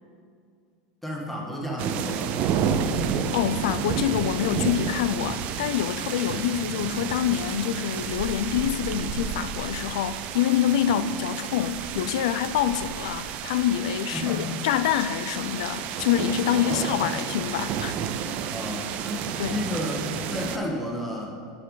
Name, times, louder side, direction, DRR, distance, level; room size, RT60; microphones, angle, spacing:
voice 1, 1.0-2.9 6.2-6.5 10.9-11.1 14.1-14.6 16.7-17.2 18.5-21.3, left 1 dB, 5° left, 1.3 m, -33 dB
sound 1, 1.8-20.6, right 7 dB, 45° right, 0.5 m, -31 dB
voice 2, 3.3-18.0 19.4-19.6, left 10 dB, 80° left, 0.4 m, -26 dB
9.1 x 5.6 x 3.9 m
supercardioid pair, 145°, 3 cm